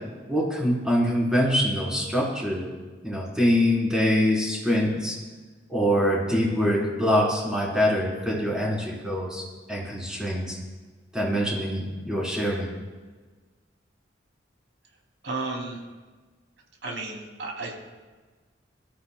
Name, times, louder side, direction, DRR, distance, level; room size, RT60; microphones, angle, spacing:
voice 1, 0.3-2.7 3.0-5.1 5.7-9.4 9.7-10.6 11.1-12.7, equal, 5° right, -5 dB, 3.6 m, -24 dB
voice 2, 15.2-15.8 16.8-17.7, right 3 dB, 75° right, 0 dB, 2.7 m, -33 dB
23.0 x 14.0 x 2.2 m, 1.3 s
head